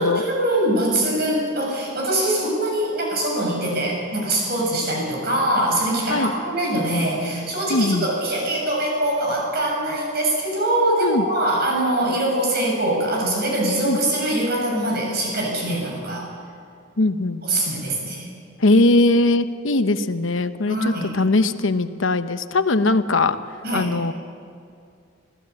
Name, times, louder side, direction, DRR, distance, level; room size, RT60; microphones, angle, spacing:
voice 1, 0.0-16.3 17.4-18.3 20.7-21.1 23.6-23.9, right 1 dB, 50° right, -1 dB, 7.7 m, -23 dB
voice 2, 7.7-8.1 11.0-11.3 13.8-14.0 17.0-17.4 18.6-23.4 23.7-24.1, left 2 dB, 75° left, 10 dB, 0.9 m, -20 dB
25.5 x 16.5 x 8.5 m, 2.3 s
head